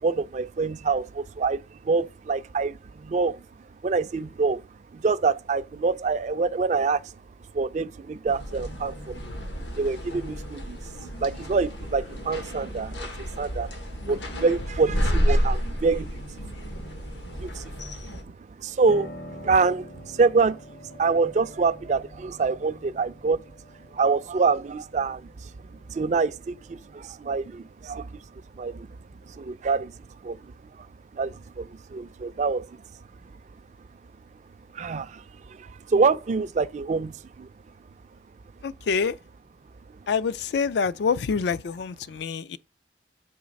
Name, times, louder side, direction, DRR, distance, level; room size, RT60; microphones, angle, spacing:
voice 1, 0.0-3.4 3.8-4.6 4.9-7.1 7.5-9.3 9.6-13.8 14.0-17.1 17.4-23.5 23.9-25.5 25.9-28.2 28.5-28.9 29.2-29.9 30.2-30.5 30.8-30.9 31.1-32.8 34.7-37.5, right 4 dB, 40° right, 0.3 m, -26 dB
sound 1, 8.3-18.2, equal, 90° left, 1.3 m, -30 dB
Piano, 18.9-28.8, equal, 50° left, 0.7 m, -46 dB
voice 2, 38.6-39.2 40.1-42.6, left 5 dB, 70° left, 0.4 m, -26 dB
7.9 x 3.2 x 5.1 m
head